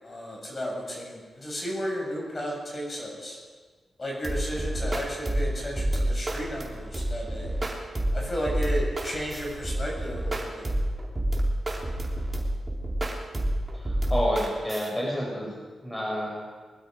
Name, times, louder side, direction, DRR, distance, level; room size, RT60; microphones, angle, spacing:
voice 1, 0.0-3.4 4.0-7.5 8.1-10.7, equal, 35° left, -2 dB, 6.8 m, -33 dB
sound 1, 4.2-14.9, right 1 dB, 25° right, 3.1 m, -29 dB
voice 2, 13.7-15.5 15.8-16.4, equal, 10° left, -3 dB, 5.4 m, -29 dB
21.0 x 12.0 x 5.2 m, 1.4 s
cardioid pair, 60°, 0 cm